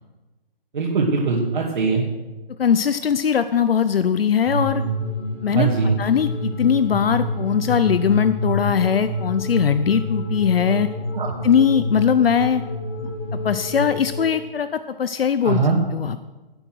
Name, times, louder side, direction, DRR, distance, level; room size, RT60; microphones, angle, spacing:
voice 1, 0.7-2.0 5.5-5.9 11.1-11.3 15.4-15.8, right 4 dB, 55° right, -5 dB, 2.7 m, -21 dB
voice 2, 2.6-4.8 5.4-5.7 6.0-10.9 11.4-12.6 13.3-15.6 15.9-16.3, left 7 dB, 75° left, 12 dB, 0.7 m, -20 dB
sound 1, 4.5-14.3, equal, 15° left, 1.6 m, -27 dB
17.0 x 7.9 x 6.3 m, 1.2 s
hypercardioid pair, 170°, 30 cm